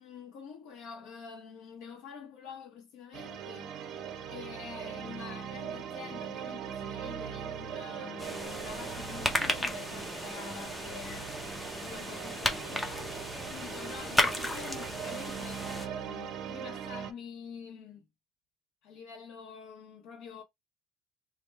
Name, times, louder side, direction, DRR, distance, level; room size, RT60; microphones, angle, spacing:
voice 1, 0.0-3.7 4.3-11.4 11.8-13.1 13.5-18.1 18.8-20.4, left 6 dB, 85° left, 0.9 m, -47 dB
sound 1, 3.1-17.1, right 9 dB, 50° right, 0.6 m, -40 dB
sound 2, 3.9-15.8, right 2 dB, 35° right, 0.9 m, -54 dB
sound 3, 8.2-15.9, left 1 dB, 5° left, 0.5 m, -34 dB
3.3 x 2.3 x 3.2 m
cardioid pair, 170°, 0 cm